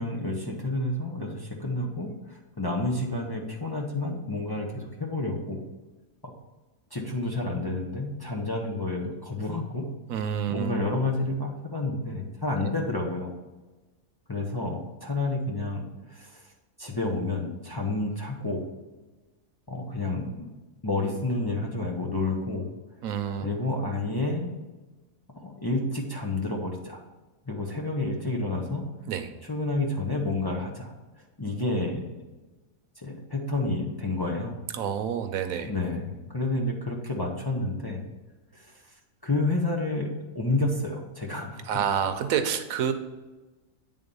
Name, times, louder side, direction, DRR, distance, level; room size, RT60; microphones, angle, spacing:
voice 1, 0.0-5.6 6.2-6.3 6.9-9.8 10.5-13.3 14.3-16.4 16.8-18.6 19.7-20.5 20.8-22.7 23.4-24.5 25.3-27.0 27.5-28.9 29.4-30.9 31.4-32.1 33.0-34.5 35.6-38.0 38.5-38.8 39.2-41.7, left 2 dB, 20° left, -2 dB, 0.7 m, -30 dB
voice 2, 10.1-10.9 12.6-12.7 23.0-23.5 29.1-29.3 34.7-35.7 41.7-42.9, right 8 dB, 90° right, 8 dB, 1.1 m, -28 dB
8.8 x 3.7 x 5.3 m, 1.2 s
omnidirectional pair, 1.4 m